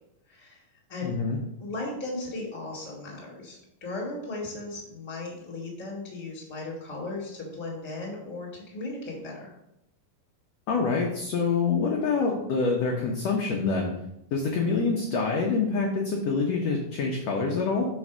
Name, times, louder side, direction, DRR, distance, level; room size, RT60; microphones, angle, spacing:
voice 1, 0.3-0.6 0.9-1.1 1.6-9.5, left 2 dB, 10° left, -3 dB, 1.3 m, -36 dB
voice 2, 1.0-1.4 10.7-13.9 14.3-17.9, left 4 dB, 70° left, 0 dB, 1.6 m, -26 dB
5.3 x 4.4 x 6.1 m, 0.82 s
omnidirectional pair, 4.0 m